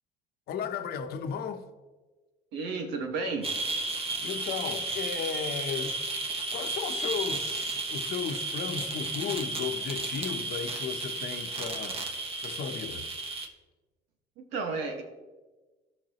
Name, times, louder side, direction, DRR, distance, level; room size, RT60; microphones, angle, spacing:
voice 1, 0.5-1.7 4.2-6.0 6.5-12.0 12.3-13.1, left 7 dB, 70° left, 0.9 m, -35 dB
voice 2, 2.5-3.5 14.4-15.0, right 4 dB, 85° right, 1.7 m, -32 dB
sound 1, 3.4-13.5, right 3 dB, 35° right, 1.3 m, -33 dB
16.0 x 6.0 x 3.0 m
cardioid pair, 110°, 17 cm